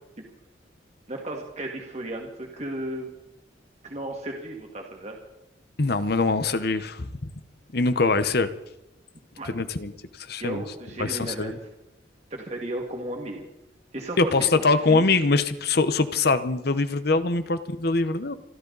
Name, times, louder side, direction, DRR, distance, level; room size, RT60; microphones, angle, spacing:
voice 1, 1.1-3.1 3.8-5.2 9.4-9.5 10.4-11.6 12.3-13.5 13.9-14.6 14.9-15.0, right 1 dB, 35° right, 1 dB, 2.1 m, -34 dB
voice 2, 5.8-7.1 7.7-8.5 9.5-9.9 10.2-10.6 11.0-11.6 14.2-18.4, left 3 dB, 55° left, 12 dB, 1.0 m, -23 dB
26.5 x 12.5 x 4.1 m, 0.89 s
head